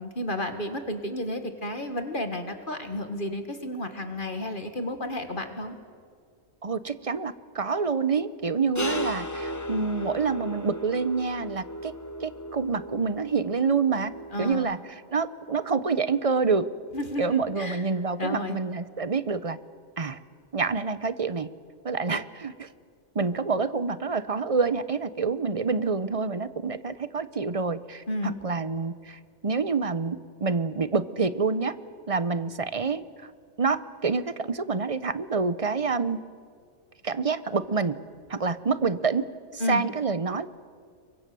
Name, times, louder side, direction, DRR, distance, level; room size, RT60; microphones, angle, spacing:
voice 1, 0.0-5.8 14.3-14.7 16.9-17.8 18.2-18.6 28.1-28.4 39.6-39.8, left 1 dB, 35° left, 7 dB, 2.1 m, -32 dB
voice 2, 6.6-11.9 12.2-14.1 14.4-14.8 15.1-16.7 17.2-19.6 20.0-20.2 20.5-21.5 21.8-22.7 23.1-31.7 32.1-33.0 33.6-36.2 37.0-38.0 38.3-40.5, right 4 dB, 30° right, 14 dB, 0.7 m, -27 dB
sound 1, 8.7-14.5, equal, 15° left, 0.9 m, -35 dB
29.0 x 23.5 x 7.0 m, 2.1 s
omnidirectional pair, 1.4 m